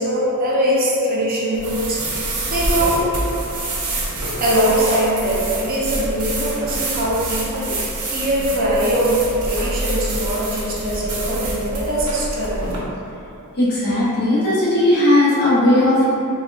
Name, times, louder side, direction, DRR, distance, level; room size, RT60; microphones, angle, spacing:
voice 1, 0.0-3.0 4.4-7.8 8.1-12.6, right 1 dB, 40° right, -5 dB, 0.5 m, -21 dB
sound 1, 1.5-12.8, right 2 dB, 90° right, 0.7 m, -26 dB
voice 2, 13.6-16.1, left 1 dB, 45° left, -8 dB, 0.8 m, -16 dB
4.1 x 2.3 x 2.4 m, 2.8 s
head